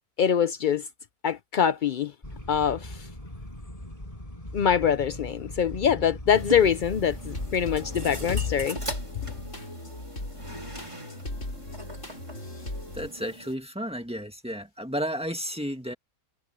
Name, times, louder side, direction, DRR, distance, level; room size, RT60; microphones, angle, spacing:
voice 1, 0.2-0.9 1.2-2.1 2.5-3.1 4.5-8.8, left 8 dB, 80° left, 0.4 m, -24 dB
sound 1, 2.2-8.7, left 1 dB, 25° left, 6.0 m, -39 dB
sound 2, 6.3-13.5, right 1 dB, 20° right, 4.0 m, -40 dB
sound 3, 7.3-13.1, left 1 dB, 55° left, 6.4 m, -38 dB
voice 2, 12.9-15.9, equal, 5° right, 2.0 m, -32 dB
omnidirectional pair, 1.6 m